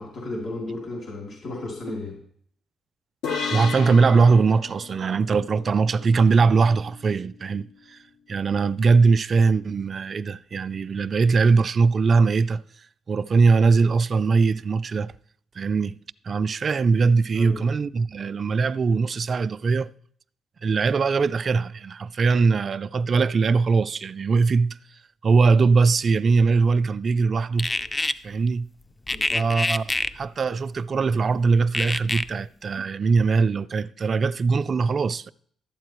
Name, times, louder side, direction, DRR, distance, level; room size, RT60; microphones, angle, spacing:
voice 1, 0.0-2.2 17.3-17.6 29.1-29.5, left 2 dB, 55° left, 2.9 m, -34 dB
sound 1, 3.2-6.7, left 5 dB, 85° left, 2.2 m, -34 dB
voice 2, 3.5-8.0 8.3-12.6 13.1-15.1 15.6-16.0 16.2-19.9 20.6-24.8 25.2-27.7 28.2-28.7 29.3-29.8 30.1-35.3, right 4 dB, 45° right, 0.3 m, -21 dB
sound 2, 27.6-28.1 29.1-30.1 31.7-32.2, left 2 dB, 20° left, 0.4 m, -25 dB
12.0 x 8.6 x 3.0 m
cardioid pair, 90°, 0 cm